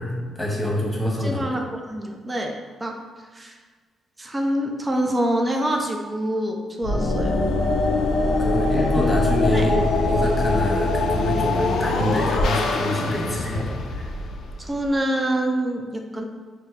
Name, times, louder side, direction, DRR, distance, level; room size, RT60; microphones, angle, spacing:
voice 1, 0.0-1.5 8.4-14.1, left 1 dB, 15° left, -2 dB, 1.2 m, -26 dB
voice 2, 1.0-2.5 2.8-3.0 3.3-3.5 4.2-7.3 8.9-9.2 9.5-9.7 14.6-16.2, right 1 dB, 25° right, 1 dB, 0.5 m, -26 dB
sound 1, 6.8-14.9, left 2 dB, 70° left, 0.4 m, -23 dB
4.4 x 2.1 x 3.0 m, 1.5 s
supercardioid pair, 55°, 0 cm